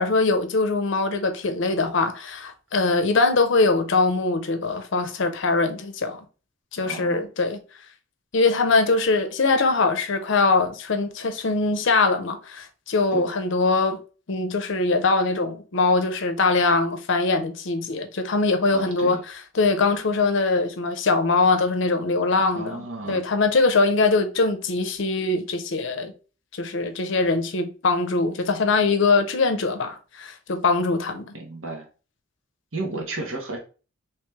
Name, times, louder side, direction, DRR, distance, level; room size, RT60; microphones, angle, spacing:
voice 1, 0.0-6.2 6.7-7.6 8.3-14.0 14.3-19.2 19.6-26.1 26.6-31.3, left 3 dB, 65° left, 0.6 m, -22 dB
voice 2, 6.8-7.2 13.1-13.3 18.7-19.2 22.5-23.2 31.3-31.8 32.7-33.6, right 2 dB, 75° right, 1.2 m, -32 dB
3.1 x 3.0 x 3.4 m
head